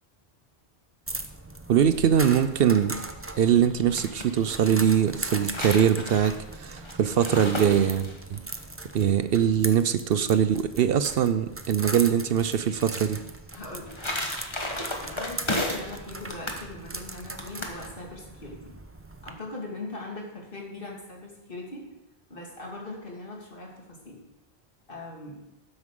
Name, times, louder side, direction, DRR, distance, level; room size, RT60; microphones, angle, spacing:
sound 1, 1.1-19.3, right 2 dB, 15° right, 0.6 m, -39 dB
voice 1, 1.7-3.0 3.4-8.4 8.9-13.2, right 8 dB, 65° right, 12 dB, 0.7 m, -22 dB
sound 2, 3.7-4.3 5.1-8.4 13.5-16.0 16.3-16.6 17.4-17.8, left 1 dB, 25° left, 1.3 m, -33 dB
voice 2, 13.5-13.9 14.7-18.8 19.2-21.9 22.3-24.2 24.9-25.4, left 2 dB, 55° left, -1 dB, 2.6 m, -40 dB
12.5 x 9.6 x 3.8 m, 0.97 s
omnidirectional pair, 1.1 m